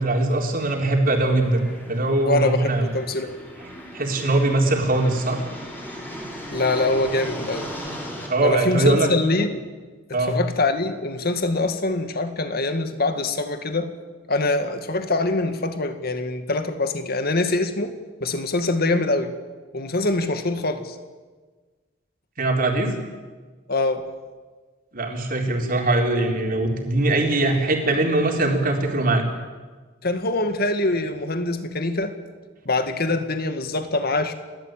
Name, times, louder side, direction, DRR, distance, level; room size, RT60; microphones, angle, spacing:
voice 1, 0.0-2.8 3.9-5.4 8.3-9.1 10.1-10.4 22.4-22.9 24.9-29.2, right 2 dB, 50° right, 2 dB, 4.1 m, -21 dB
sound 1, 1.0-8.3, equal, 10° left, 5.4 m, -37 dB
voice 2, 2.2-3.4 3.7-3.8 6.5-7.7 8.4-9.6 10.3-13.9 14.3-17.9 18.2-19.3 19.7-21.0 23.7-24.1 30.0-32.1 32.7-34.3, left 2 dB, 55° left, 8 dB, 2.0 m, -24 dB
30.0 x 13.5 x 9.1 m, 1.4 s
head